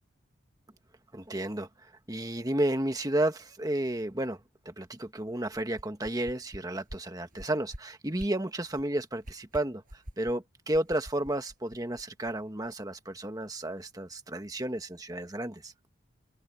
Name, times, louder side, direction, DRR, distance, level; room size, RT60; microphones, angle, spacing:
voice 1, 1.1-1.7 2.1-4.4 4.6-15.7, right 1 dB, 20° right, 1.4 m, -32 dB
sound 1, 5.5-6.6 6.9-7.0 7.3-7.8 8.1-8.3 8.7-8.9 9.2-10.3 10.7-12.3 12.6-12.7, equal, 40° right, 5.8 m, -45 dB
open air
head